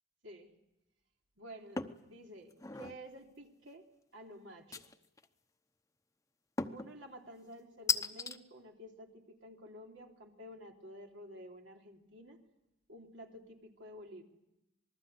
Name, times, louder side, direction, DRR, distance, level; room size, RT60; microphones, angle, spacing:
voice 1, 1.4-3.8 4.1-4.9 6.7-12.4 12.9-14.2, equal, 80° right, 2 dB, 3.2 m, -51 dB
sound 1, 1.8-2.0 2.5-3.0 4.7-5.2 6.6-6.9 7.9-8.4, left 4 dB, 15° left, 0.9 m, -35 dB
26.5 x 20.5 x 8.1 m, 0.89 s
head